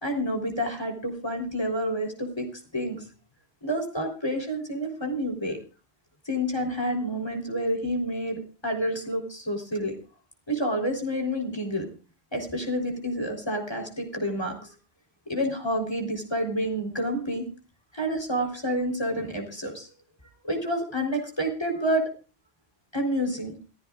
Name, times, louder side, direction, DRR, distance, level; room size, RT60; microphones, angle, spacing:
voice 1, 0.0-3.0 3.6-5.6 6.3-9.9 10.5-11.9 12.3-14.7 15.3-17.5 17.9-19.9 20.4-22.1 22.9-23.5, equal, 25° left, 2 dB, 3.9 m, -29 dB
27.5 x 16.0 x 2.4 m, 0.35 s
omnidirectional pair, 1.1 m